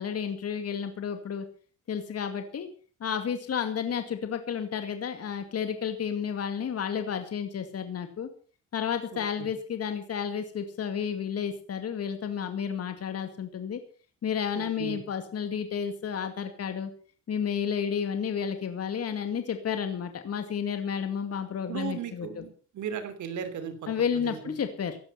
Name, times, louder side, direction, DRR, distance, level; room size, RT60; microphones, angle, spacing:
voice 1, 0.0-1.5 1.9-2.7 3.0-8.3 8.7-13.8 14.2-16.9 17.3-22.5 23.9-25.0, left 7 dB, 55° left, 8 dB, 2.3 m, -31 dB
voice 2, 14.5-15.0 21.6-23.7 24.1-24.5, right 7 dB, 75° right, 10 dB, 3.3 m, -36 dB
16.5 x 11.5 x 5.7 m, 0.39 s
cardioid pair, 90°, 30 cm